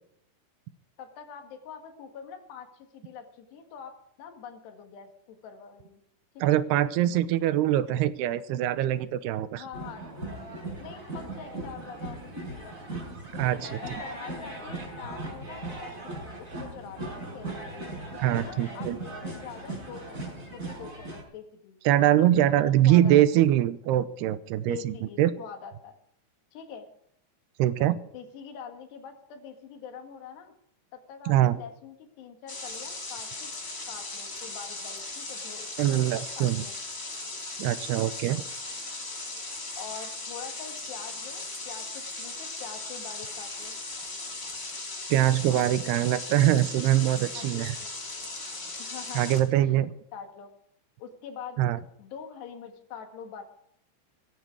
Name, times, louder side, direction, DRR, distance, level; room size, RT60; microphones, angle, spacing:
voice 1, 1.0-6.0 6.5-6.6 9.5-10.1 10.8-12.8 13.3-17.5 18.1-21.8 22.2-23.2 24.7-25.9 26.5-26.9 27.8-27.9 28.1-30.5 30.9-33.5 33.9-36.7 39.8-43.7 45.6-45.7 47.3-47.9 48.8-49.8 50.1-50.5 51.0-51.6 52.0-53.4, left 7 dB, 85° left, 5 dB, 4.1 m, -44 dB
voice 2, 6.4-9.6 13.4-13.7 18.2-19.0 21.9-25.3 27.6-28.0 31.3-31.5 35.8-36.7 37.6-38.4 45.1-47.8 49.2-49.9 51.6-51.8, right 13 dB, 80° right, 14 dB, 2.8 m, -23 dB
sound 1, 9.7-21.2, right 2 dB, 20° right, 5.0 m, -38 dB
sound 2, 32.5-49.4, left 2 dB, 25° left, 4.7 m, -38 dB
17.5 x 15.0 x 4.8 m, 0.71 s
omnidirectional pair, 4.7 m